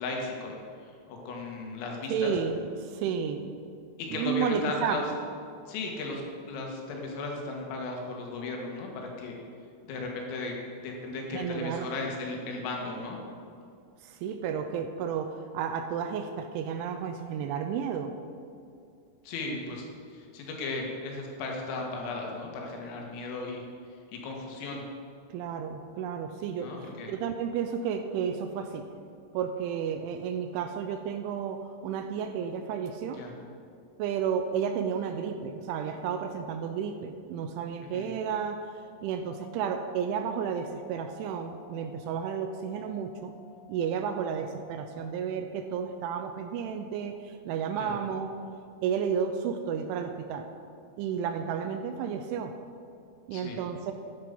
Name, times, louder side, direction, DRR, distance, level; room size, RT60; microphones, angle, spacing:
voice 1, 0.0-2.3 4.0-5.0 5.7-9.4 9.9-13.2 19.2-19.9 20.1-23.6 24.1-24.8 26.6-27.1 33.1-33.3 37.8-38.1 47.8-47.9 53.3-53.6, left 3 dB, 80° left, 0 dB, 4.4 m, -36 dB
voice 2, 2.1-3.5 4.1-5.2 11.3-11.9 14.0-18.1 25.3-28.9 29.3-33.2 34.0-38.7 39.0-43.3 43.7-48.3 48.8-50.5 51.0-52.5 53.3-53.9, right 7 dB, 80° right, 7 dB, 2.9 m, -32 dB
sound 1, 39.2-44.9, left 10 dB, 20° left, 3.7 m, -55 dB
13.5 x 10.5 x 5.4 m, 2.5 s
omnidirectional pair, 5.8 m